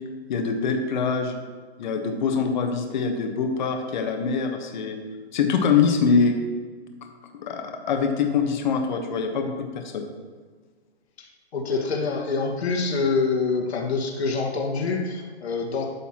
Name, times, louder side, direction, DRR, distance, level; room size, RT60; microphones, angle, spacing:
voice 1, 0.3-1.4 1.8-5.0 5.3-6.3 7.4-10.0, left 5 dB, 45° left, 5 dB, 1.1 m, -24 dB
voice 2, 11.5-15.8, left 4 dB, 75° left, 1 dB, 1.7 m, -25 dB
11.5 x 7.0 x 2.9 m, 1.5 s
hypercardioid pair, 155°, 33 cm